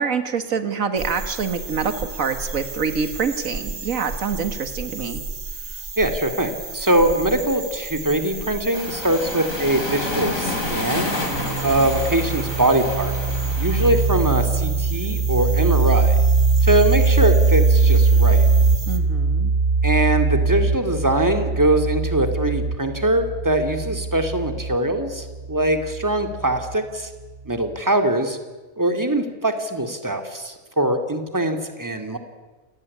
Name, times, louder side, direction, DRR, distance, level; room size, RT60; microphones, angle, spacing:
voice 1, 0.0-5.2 18.9-19.5, right 5 dB, 85° right, 10 dB, 2.0 m, -26 dB
sound 1, 1.0-19.0, right 4 dB, 55° right, 2.3 m, -34 dB
voice 2, 6.0-11.1 11.6-13.2 13.6-16.2 16.6-18.5 19.8-27.1 27.5-28.4 28.8-32.2, right 1 dB, 15° right, 6 dB, 2.5 m, -22 dB
Waves surf, 8.7-13.9, left 2 dB, 85° left, 3.9 m, -29 dB
sound 2, 11.3-26.7, right 4 dB, 40° right, 1.0 m, -21 dB
28.5 x 18.0 x 9.8 m, 1.3 s
omnidirectional pair, 1.4 m